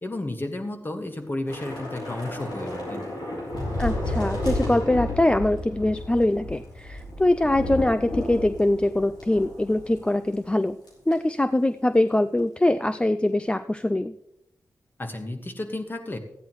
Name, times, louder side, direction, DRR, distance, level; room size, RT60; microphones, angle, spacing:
voice 1, 0.0-3.1 15.0-16.2, left 2 dB, 30° left, 5 dB, 1.6 m, -32 dB
Thunder / Rain, 1.5-10.1 10.3-10.5 10.9-11.1, left 1 dB, 90° left, 3.6 m, -32 dB
voice 2, 3.8-10.8 11.1-14.1, left 1 dB, 15° left, 11 dB, 0.4 m, -23 dB
14.0 x 10.0 x 3.1 m, 0.81 s
cardioid pair, 50°, 7 cm